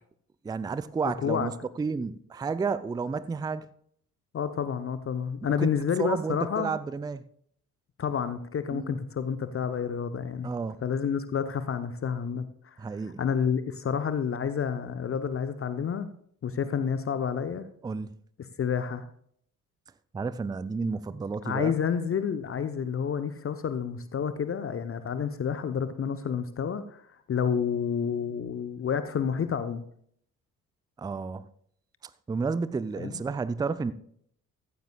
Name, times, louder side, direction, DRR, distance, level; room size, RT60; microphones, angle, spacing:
voice 1, 0.4-1.5 1.8-3.7 5.6-5.7 6.0-7.2 8.7-9.0 10.4-10.8 12.8-13.2 17.8-18.1 20.1-21.7 31.0-31.4 32.3-33.9, right 4 dB, 10° right, 0.5 m, -31 dB
voice 2, 1.0-1.5 4.3-6.7 8.0-10.5 10.8-12.7 13.2-16.1 16.4-17.6 18.6-19.0 21.4-27.0 27.3-29.8 33.0-33.2, left 7 dB, 30° left, 0.8 m, -29 dB
14.5 x 14.5 x 2.4 m
figure-of-eight pair, 45°, 43 cm